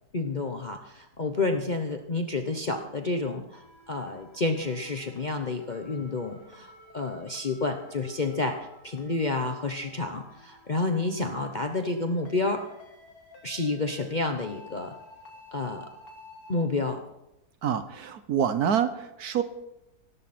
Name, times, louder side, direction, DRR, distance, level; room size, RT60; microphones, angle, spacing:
voice 1, 0.1-12.6 13.4-14.9 15.5-15.9 16.5-17.0, left 3 dB, 35° left, 4 dB, 0.9 m, -30 dB
sound 1, 3.5-16.6, left 2 dB, 60° left, 2.7 m, -52 dB
voice 2, 17.6-19.4, right 8 dB, 75° right, 11 dB, 1.4 m, -26 dB
17.0 x 13.5 x 4.3 m, 0.89 s
omnidirectional pair, 1.7 m